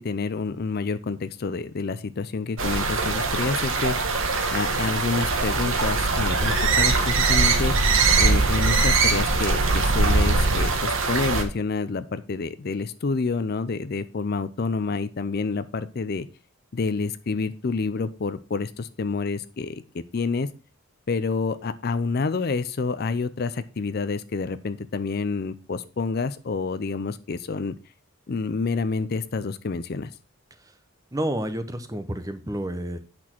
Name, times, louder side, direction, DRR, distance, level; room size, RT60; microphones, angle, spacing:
voice 1, 0.0-4.0 4.5-7.8 8.2-16.3 16.7-19.8 20.1-20.5 21.1-27.7 28.3-30.1, left 4 dB, 45° left, 14 dB, 0.5 m, -28 dB
sound 1, 2.6-11.4, right 3 dB, 65° right, 1.4 m, -22 dB
voice 2, 31.1-33.0, right 1 dB, 15° right, 10 dB, 0.8 m, -29 dB
8.5 x 6.1 x 4.4 m, 0.33 s
head